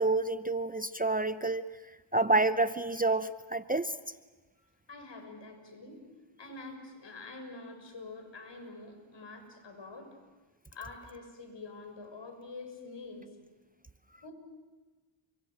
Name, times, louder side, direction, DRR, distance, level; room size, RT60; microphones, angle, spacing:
voice 1, 0.0-1.6 2.1-3.9, right 2 dB, 15° right, 12 dB, 0.7 m, -28 dB
voice 2, 4.9-6.0 6.4-10.1 10.7-13.2 14.2-14.3, left 3 dB, 60° left, 5 dB, 6.5 m, -46 dB
29.5 x 25.5 x 6.5 m, 1.3 s
cardioid pair, 65°, 49 cm